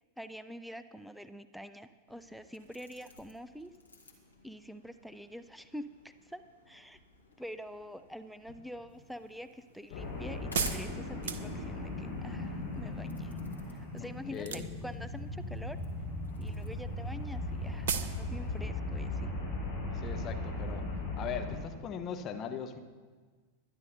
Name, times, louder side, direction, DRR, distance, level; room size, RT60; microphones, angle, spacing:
voice 1, 0.2-3.7 4.4-5.9 6.2-7.0 7.4-13.4 13.7-15.8 16.4-19.3, equal, ahead, 12 dB, 0.4 m, -46 dB
sound 1, 2.1-16.7, left 3 dB, 80° left, 1.5 m, -55 dB
sound 2, 8.9-12.0 14.4-15.0 15.3-15.9 16.2-16.3 16.6-16.7 16.9-17.0 17.3-17.4 17.9-18.2 18.5-18.6, right 7 dB, 60° right, 0.6 m, -35 dB
sound 3, 9.9-21.6, left 2 dB, 60° left, 4.3 m, -38 dB
voice 2, 14.0-14.7 19.9-20.9 21.2-22.8, left 7 dB, 30° left, 6 dB, 0.9 m, -40 dB
22.0 x 10.5 x 2.7 m, 1.5 s
figure-of-eight pair, 90°, 0 cm